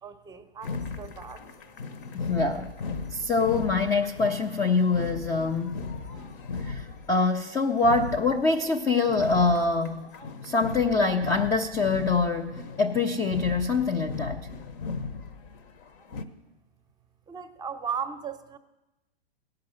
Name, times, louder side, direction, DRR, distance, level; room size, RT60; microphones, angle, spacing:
voice 1, 0.0-1.5 17.3-18.6, right 7 dB, 15° right, 9 dB, 0.7 m, -36 dB
sound 1, 0.6-16.2, left 4 dB, 55° left, 1.0 m, -37 dB
voice 2, 2.1-2.7 3.1-5.8 6.6-10.1 10.4-14.5, left 3 dB, 10° left, 3 dB, 0.3 m, -25 dB
17.0 x 5.7 x 7.5 m, 1.0 s
hypercardioid pair, 110°, 31 cm